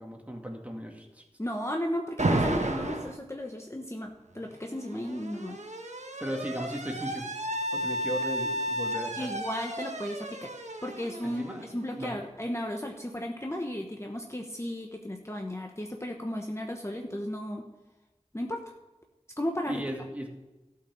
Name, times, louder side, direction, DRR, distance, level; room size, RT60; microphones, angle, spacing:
voice 1, 0.0-1.2 6.2-7.3 7.7-9.3 11.2-11.6 11.9-12.1 19.7-20.3, equal, 10° right, 1 dB, 2.3 m, -36 dB
voice 2, 1.4-5.6 9.2-10.5 10.8-17.7 18.3-18.6 19.4-19.8, left 1 dB, 25° left, 2 dB, 1.0 m, -34 dB
Alarm, 2.2-3.2 4.4-12.1, right 1 dB, 90° right, 1.2 m, -33 dB
13.0 x 5.9 x 7.4 m, 1.1 s
wide cardioid pair, 40°, 12 cm